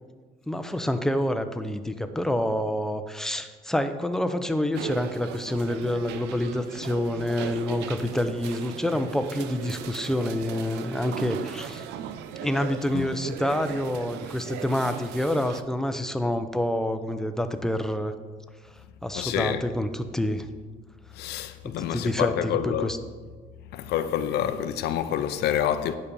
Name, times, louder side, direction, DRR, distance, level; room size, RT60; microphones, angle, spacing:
voice 1, 0.5-11.8 12.4-18.1 18.6-18.7 19.0-20.5 21.6-23.0, left 1 dB, 5° left, 0.6 m, -27 dB
sound 1, 4.7-15.6, right 9 dB, 90° right, 0.6 m, -38 dB
voice 2, 19.1-19.6 21.1-22.9 23.7-26.0, left 10 dB, 80° left, 0.6 m, -27 dB
9.8 x 5.3 x 6.9 m
cardioid pair, 110°, 17 cm